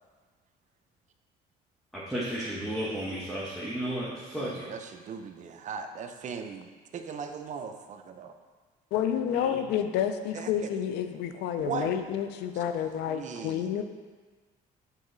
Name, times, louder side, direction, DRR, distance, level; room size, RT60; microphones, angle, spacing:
voice 1, 1.9-4.7 9.4-9.6, right 1 dB, ahead, -7 dB, 1.0 m, -33 dB
voice 2, 4.3-8.3 10.3-10.5 11.6-11.9 13.1-13.8, right 6 dB, 45° right, 6 dB, 0.6 m, -38 dB
voice 3, 8.9-13.8, left 9 dB, 85° left, 8 dB, 0.5 m, -29 dB
7.4 x 3.9 x 3.9 m, 1.4 s
cardioid pair, 110°, 17 cm